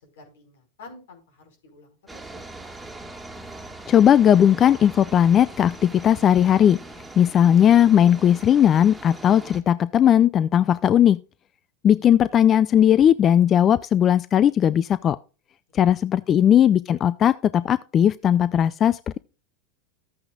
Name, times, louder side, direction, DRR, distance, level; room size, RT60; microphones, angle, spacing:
voice 1, 0.0-2.4 16.3-16.4, left 3 dB, 80° left, 5.0 m, -49 dB
sound 1, 2.1-9.6, right 2 dB, 10° right, 1.8 m, -41 dB
voice 2, 3.9-6.8 7.2-11.2 11.8-15.2 15.7-19.2, left 9 dB, 35° left, 0.4 m, -17 dB
13.5 x 8.6 x 2.4 m
hypercardioid pair, 100°, 0 cm